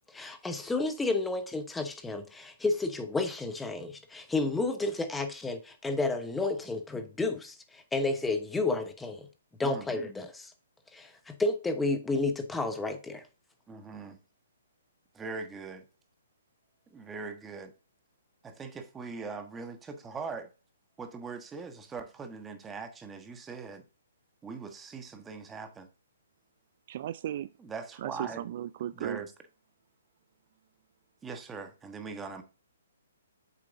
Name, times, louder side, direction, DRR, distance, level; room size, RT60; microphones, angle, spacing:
voice 1, 0.1-9.3 9.6-10.5 10.9-13.2, left 3 dB, 5° left, 1.0 m, -31 dB
voice 2, 9.6-9.9 13.7-14.2 15.1-15.8 16.9-17.7 18.4-20.5 21.0-23.8 24.4-25.9 27.6-28.4 28.9-29.3 31.2-32.4, right 4 dB, 10° right, 1.3 m, -41 dB
voice 3, 26.9-27.5 28.0-29.2, right 11 dB, 50° right, 0.3 m, -35 dB
8.1 x 7.0 x 2.6 m
hypercardioid pair, 135°, 0 cm